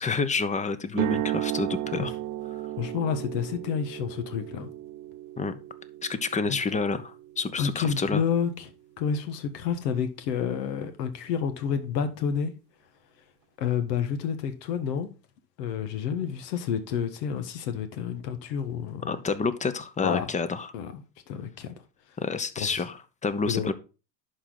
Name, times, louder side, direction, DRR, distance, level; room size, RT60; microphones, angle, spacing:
voice 1, 0.0-2.1 5.4-5.6 6.0-8.2 19.1-20.7 22.2-23.7, left 4 dB, 15° left, 0.7 m, -29 dB
sound 1, 0.9-8.9, right 15 dB, 40° right, 0.7 m, -35 dB
voice 2, 2.8-4.7 6.5-6.6 7.6-8.7 9.0-12.5 13.6-15.1 15.6-19.1 20.0-20.3 20.7-21.0 21.3-21.7 22.6-22.7 23.5-23.7, left 7 dB, 85° left, 1.5 m, -29 dB
11.0 x 4.6 x 3.8 m
supercardioid pair, 120°, 48 cm